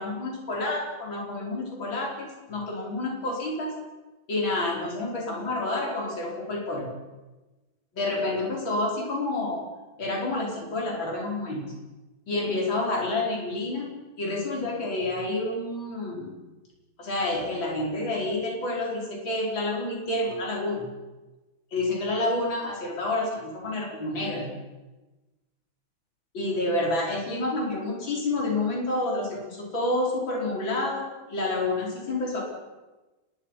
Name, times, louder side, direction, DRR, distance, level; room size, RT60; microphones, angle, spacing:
voice 1, 0.0-3.7 4.3-6.9 7.9-9.6 10.0-11.7 12.3-13.9 14.2-16.3 17.0-20.9 21.7-24.5 26.3-32.4, left 2 dB, 70° left, -2 dB, 5.6 m, -29 dB
29.5 x 21.0 x 5.8 m, 1.1 s
omnidirectional pair, 2.2 m